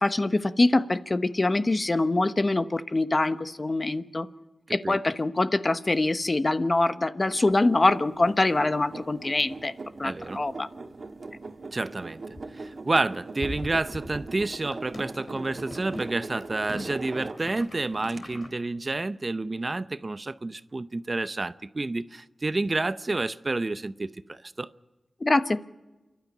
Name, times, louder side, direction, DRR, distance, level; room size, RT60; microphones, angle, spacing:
voice 1, 0.0-4.3 4.7-9.7 10.0-10.7 25.2-25.6, left 2 dB, 40° left, 1.0 m, -24 dB
voice 2, 4.7-5.0 10.0-10.4 11.7-12.2 12.5-24.7, right 2 dB, 45° right, 0.7 m, -29 dB
sound 1, 7.2-17.7 18.1-18.2, right 3 dB, 65° right, 1.5 m, -41 dB
sound 2, 10.0-10.1 10.7-10.8 11.0-11.3 11.5-11.7 12.1-18.5, left 1 dB, 65° left, 4.2 m, -41 dB
28.0 x 12.0 x 9.3 m
cardioid pair, 45°, 0 cm